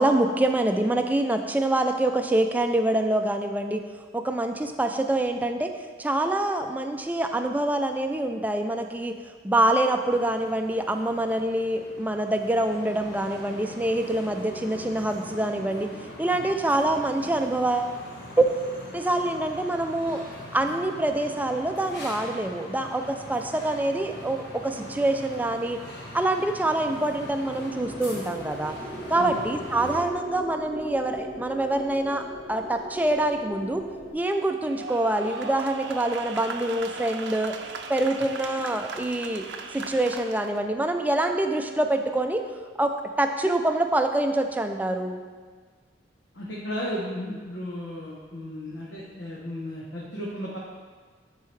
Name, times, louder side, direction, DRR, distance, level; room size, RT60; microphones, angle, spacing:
voice 1, 0.0-3.8 4.1-5.7 6.0-9.1 9.4-15.9 16.2-17.9 18.4-18.5 18.9-20.2 20.5-25.8 26.1-28.7 29.1-33.8 34.1-37.6 37.9-39.4 39.7-42.4 42.8-45.2, right 1 dB, 10° right, 5 dB, 0.4 m, -25 dB
sound 1, 10.1-30.0, left 1 dB, 65° left, 1.4 m, -42 dB
sound 2, 27.0-34.1, equal, 20° left, 1.5 m, -40 dB
sound 3, 34.7-40.6, right 4 dB, 75° right, 0.5 m, -38 dB
voice 2, 46.3-50.6, equal, 85° left, -5 dB, 1.0 m, -34 dB
10.0 x 4.6 x 3.3 m, 1.5 s
head